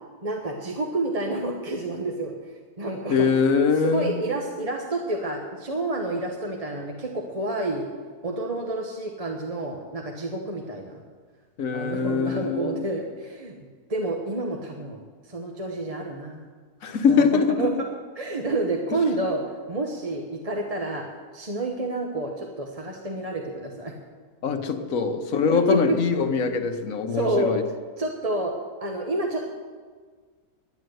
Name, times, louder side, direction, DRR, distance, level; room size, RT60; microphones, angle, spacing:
voice 1, 0.2-2.4 2.8-3.3 3.8-7.9 8.2-11.0 11.7-13.5 13.9-16.4 17.1-17.9 18.1-19.4 19.7-21.0 21.3-23.9 24.8-24.9 25.3-26.0 26.5-26.6 27.1-27.6 28.0-28.5 28.8-29.5, right 2 dB, 25° right, 1 dB, 1.0 m, -29 dB
voice 2, 3.1-4.2 11.6-12.8 16.8-17.7 24.4-27.6, left 5 dB, 60° left, 7 dB, 1.4 m, -23 dB
11.0 x 10.5 x 7.8 m, 1.5 s
omnidirectional pair, 1.6 m